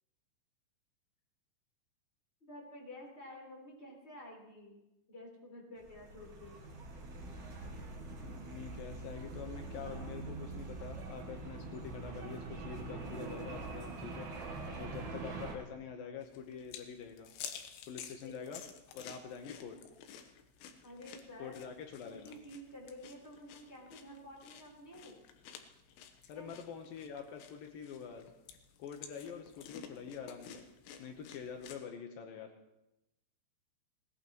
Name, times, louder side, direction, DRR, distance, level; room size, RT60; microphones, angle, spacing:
voice 1, 2.5-4.8 5.1-6.6 18.2-18.3 20.8-21.6 22.0-25.2 26.3-26.5, left 1 dB, 15° left, -1 dB, 3.6 m, -51 dB
sound 1, 5.8-15.5, right 3 dB, 50° right, 5.4 m, -44 dB
voice 2, 8.2-14.3 14.8-17.3 17.9-18.6 18.9-19.8 21.4-22.4 26.3-28.3 28.8-30.6 31.0-32.5, left 7 dB, 90° left, 4 dB, 2.0 m, -46 dB
sound 2, 16.2-31.8, left 8 dB, 75° left, 2.9 m, -52 dB
20.5 x 19.5 x 3.1 m, 0.92 s
omnidirectional pair, 5.7 m